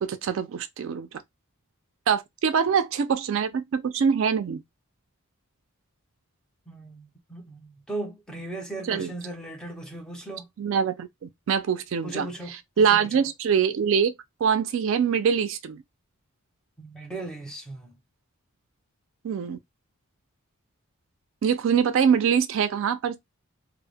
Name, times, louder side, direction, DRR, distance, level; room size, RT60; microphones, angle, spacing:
voice 1, 0.0-1.1 2.1-4.6 8.8-9.1 10.6-14.1 14.4-15.8 19.2-19.6 21.4-23.2, right 7 dB, 60° right, 0.3 m, -24 dB
voice 2, 6.7-10.5 12.0-12.5 12.9-13.3 16.8-17.9, right 2 dB, 5° left, 0.5 m, -37 dB
2.1 x 2.0 x 3.2 m
head